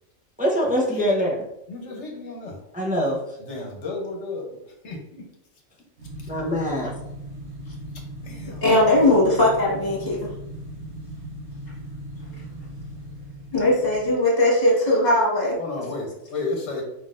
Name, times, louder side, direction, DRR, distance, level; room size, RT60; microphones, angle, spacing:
voice 1, 0.4-1.4 2.7-3.2 6.3-6.9, equal, 10° right, -3 dB, 0.6 m, -23 dB
voice 2, 1.7-2.6 3.4-4.5 4.8-5.2 8.2-8.6 15.6-16.8, left 3 dB, 70° left, 1 dB, 1.2 m, -32 dB
sound 1, 6.0-14.2, right 1 dB, 60° right, 1.5 m, -38 dB
voice 3, 8.6-10.3 13.5-15.6, left 1 dB, 35° left, -5 dB, 1.8 m, -19 dB
5.0 x 3.8 x 2.5 m, 0.83 s
omnidirectional pair, 1.3 m